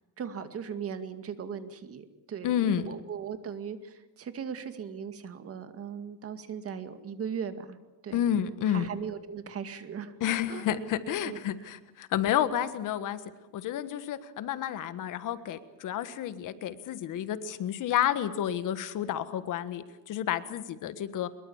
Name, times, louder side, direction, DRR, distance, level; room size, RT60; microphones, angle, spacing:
voice 1, 0.2-7.8 8.0-8.2 8.6-10.1 10.5-10.7 11.2-11.7, right 7 dB, 40° right, 9 dB, 2.1 m, -38 dB
voice 2, 2.4-2.8 8.1-8.9 10.2-13.2 13.5-21.3, left 10 dB, 55° left, 12 dB, 1.6 m, -30 dB
24.0 x 22.0 x 7.3 m, 1.1 s
cardioid pair, 130°, 36 cm